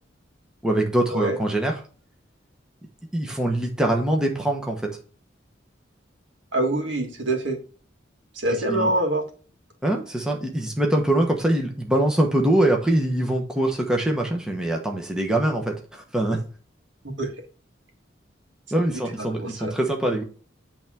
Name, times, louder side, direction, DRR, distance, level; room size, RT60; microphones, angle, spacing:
voice 1, 0.6-1.8 3.1-4.9 8.7-8.9 9.8-16.4 18.7-20.2, right 1 dB, 5° right, 1 dB, 1.1 m, -23 dB
voice 2, 6.5-7.6 8.3-9.2 17.2-17.3 19.2-19.7, right 1 dB, 75° right, 3 dB, 1.8 m, -25 dB
8.4 x 3.5 x 6.1 m, 0.38 s
head